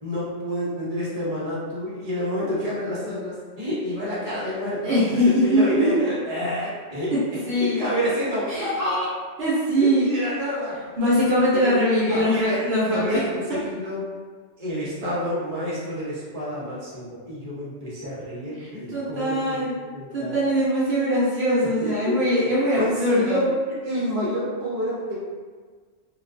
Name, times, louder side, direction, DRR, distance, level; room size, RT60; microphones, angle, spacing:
voice 1, 0.0-7.1 7.5-9.2 9.8-10.8 11.2-11.8 12.1-12.6 12.9-14.0 14.6-20.4 21.8-22.1 22.7-23.5 23.8-25.1, equal, 35° right, -8 dB, 0.8 m, -28 dB
voice 2, 4.8-6.0 7.1-7.2 7.5-7.8 8.5-8.7 9.4-10.1 11.0-13.2 18.6-19.8 20.1-23.4, equal, 65° right, -9 dB, 0.8 m, -22 dB
2.3 x 2.2 x 2.5 m, 1.5 s
omnidirectional pair, 1.2 m